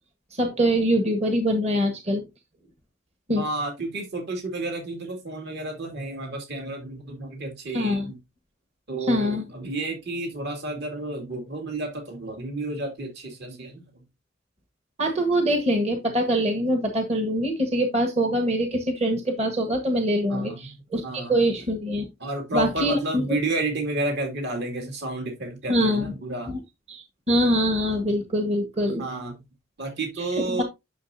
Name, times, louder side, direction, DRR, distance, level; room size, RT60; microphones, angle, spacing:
voice 1, 0.3-2.2 3.3-3.4 7.7-8.1 9.0-9.4 15.0-22.1 22.5-23.4 25.7-26.1 26.5-26.6 26.9-29.1 30.2-30.6, equal, 30° right, 6 dB, 1.3 m, -24 dB
voice 2, 3.4-8.2 8.9-13.9 20.3-20.6 21.0-21.3 22.2-26.5 29.0-29.3 29.8-30.6, right 2 dB, 55° right, 2 dB, 2.4 m, -31 dB
10.0 x 6.5 x 2.7 m, 0.22 s
head